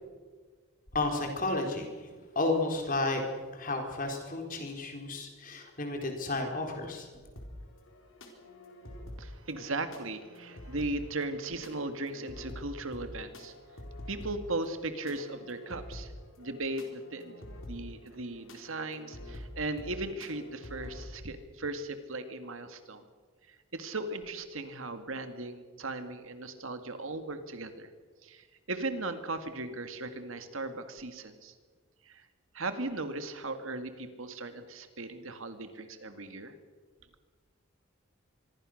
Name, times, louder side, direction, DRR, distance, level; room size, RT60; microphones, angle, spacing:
voice 1, 0.9-2.1 2.4-3.2 3.5-7.1, left 2 dB, 40° left, 3 dB, 4.1 m, -32 dB
sound 1, 7.4-21.1, left 1 dB, 65° left, 4.3 m, -47 dB
voice 2, 9.2-13.5 14.1-16.1 16.4-23.0 23.5-27.9 28.2-31.5 32.0-32.3 32.5-36.6, right 2 dB, 70° right, 8 dB, 2.0 m, -37 dB
25.0 x 22.5 x 6.5 m, 1.5 s
head